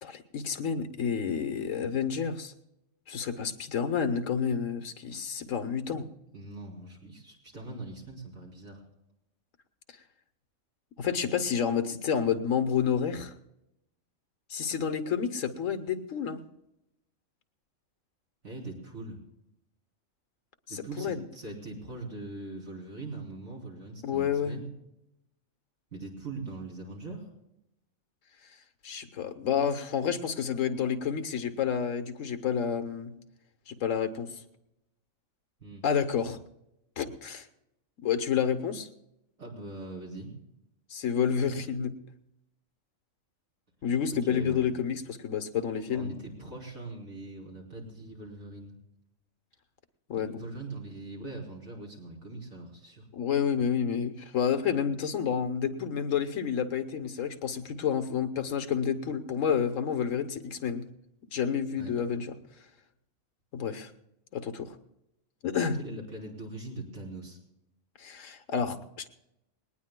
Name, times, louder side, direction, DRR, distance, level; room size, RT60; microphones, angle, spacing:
voice 1, 0.0-2.5 3.1-6.1 11.0-13.3 14.5-16.4 20.7-21.2 24.0-24.6 28.8-33.1 33.7-34.3 35.8-36.4 37.0-37.5 38.0-38.9 40.9-41.9 43.8-46.1 50.1-50.4 53.1-60.9 61.3-62.3 63.5-63.9 64.3-64.8 65.4-65.8 68.0-69.1, left 7 dB, 70° left, 9 dB, 1.3 m, -29 dB
voice 2, 6.3-8.8 18.4-19.2 20.7-24.7 25.9-27.3 35.6-35.8 39.4-40.4 44.2-44.7 45.9-48.7 50.2-53.1 61.7-61.9 65.8-67.4, right 2 dB, 75° right, -2 dB, 4.2 m, -41 dB
20.0 x 19.0 x 2.2 m, 0.87 s
omnidirectional pair, 1.4 m